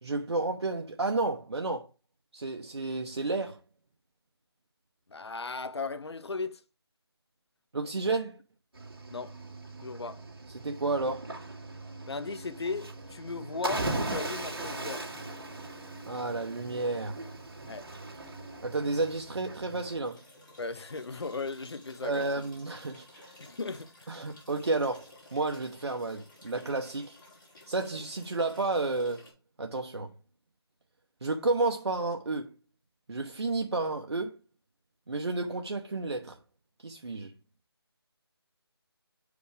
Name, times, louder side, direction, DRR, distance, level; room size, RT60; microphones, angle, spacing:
voice 1, 0.0-1.9 2.3-3.6 7.7-8.4 10.5-11.3 16.1-17.2 18.6-20.2 22.0-23.3 24.1-27.2 27.7-29.2 29.6-30.1 31.2-32.5 33.1-34.4 35.1-36.4 36.8-37.3, right 3 dB, 80° right, 0.8 m, -31 dB
voice 2, 5.1-6.6 9.1-9.3 9.8-10.2 12.1-15.1 17.7-17.9 20.6-22.3 23.4-24.1, left 4 dB, 80° left, 0.7 m, -37 dB
Cricket / Waves surf, 8.7-20.0, right 2 dB, 60° right, 2.1 m, -39 dB
sound 1, 20.0-29.3, left 2 dB, 45° left, 3.5 m, -55 dB
5.9 x 5.1 x 3.3 m
figure-of-eight pair, 170°, 14 cm